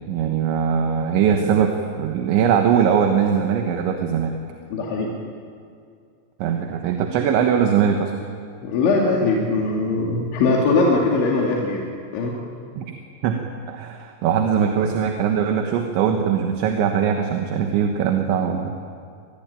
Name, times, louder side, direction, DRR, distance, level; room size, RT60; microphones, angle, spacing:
voice 1, 0.1-4.3 6.4-8.1 12.8-12.9 13.2-13.4 13.7-18.7, right 7 dB, 85° right, 4 dB, 3.7 m, -21 dB
voice 2, 4.7-5.1 8.6-11.9 12.1-12.3, left 3 dB, 90° left, -2 dB, 4.6 m, -20 dB
27.0 x 21.0 x 9.1 m, 2.3 s
omnidirectional pair, 5.2 m